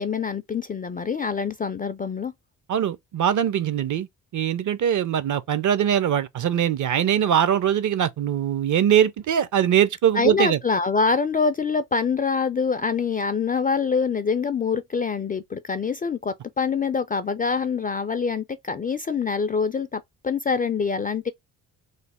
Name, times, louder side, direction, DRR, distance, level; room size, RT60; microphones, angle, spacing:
voice 1, 0.0-2.3 10.1-21.3, left 5 dB, 20° left, 0.3 m, -25 dB
voice 2, 2.7-4.1 4.3-10.6, right 9 dB, 45° right, 0.6 m, -22 dB
3.3 x 2.0 x 4.1 m
supercardioid pair, 60°, 43 cm